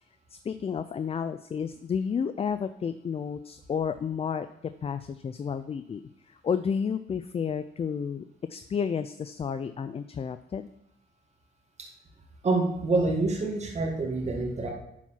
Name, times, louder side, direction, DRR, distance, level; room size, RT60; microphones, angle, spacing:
voice 1, 0.3-4.5 4.8-8.2 8.5-10.7, left 6 dB, 30° left, 11 dB, 0.4 m, -31 dB
voice 2, 12.4-14.7, right 3 dB, 35° right, 0 dB, 1.7 m, -26 dB
9.9 x 4.6 x 5.8 m, 0.79 s
cardioid pair, 90°, 20 cm